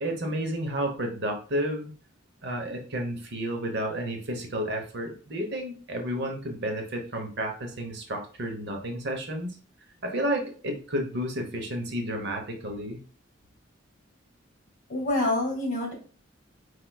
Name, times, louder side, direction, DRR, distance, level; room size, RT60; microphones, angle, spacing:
voice 1, 0.0-1.9 2.4-9.6 10.0-13.0, equal, 60° right, 3 dB, 1.0 m, -31 dB
voice 2, 14.9-15.9, left 2 dB, 40° left, -1 dB, 2.1 m, -26 dB
4.7 x 4.5 x 2.3 m, 0.40 s
head